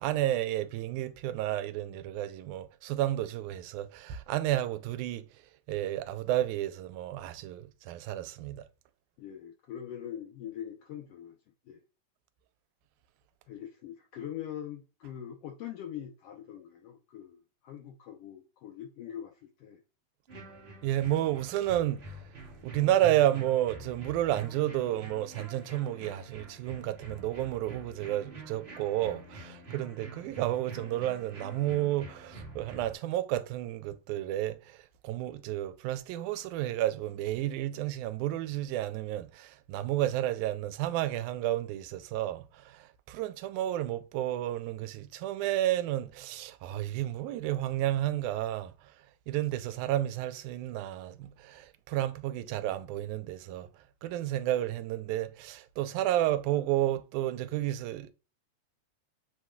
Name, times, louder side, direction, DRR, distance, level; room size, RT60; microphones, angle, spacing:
voice 1, 0.0-8.7 20.8-22.2 22.6-58.1, right 13 dB, 90° right, 2.0 m, -31 dB
voice 2, 9.2-11.4 11.7-11.8 13.5-19.8, left 10 dB, 85° left, 1.3 m, -43 dB
sound 1, 20.3-32.9, right 3 dB, 50° right, 0.7 m, -46 dB
7.4 x 3.1 x 2.2 m
omnidirectional pair, 3.4 m